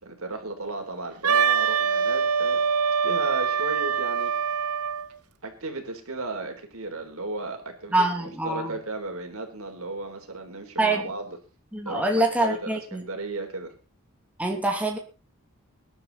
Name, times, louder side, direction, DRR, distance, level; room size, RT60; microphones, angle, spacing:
voice 1, 0.0-2.6 3.0-4.3 5.4-11.4 11.8-13.7, right 2 dB, 65° right, 4 dB, 3.9 m, -35 dB
Wind instrument woodwind instrument, 1.2-5.1, right 6 dB, 90° right, 1.2 m, -24 dB
voice 2, 7.9-8.7 10.8-11.1 11.7-13.0 14.4-15.0, right 2 dB, 5° right, 1 dB, 2.8 m, -25 dB
20.5 x 11.0 x 4.2 m, 0.34 s
head